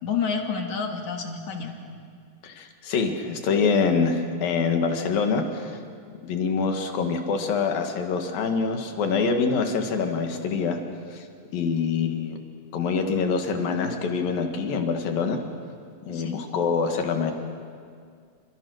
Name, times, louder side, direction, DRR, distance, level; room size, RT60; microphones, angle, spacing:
voice 1, 0.0-1.7 16.1-16.4, left 6 dB, 60° left, 3 dB, 3.4 m, -29 dB
voice 2, 2.4-5.8 6.2-10.8 11.1-11.3 11.5-12.4 12.7-15.4 16.1-17.3, left 5 dB, 85° left, 4 dB, 3.7 m, -25 dB
29.0 x 27.5 x 6.4 m, 2.1 s
omnidirectional pair, 3.9 m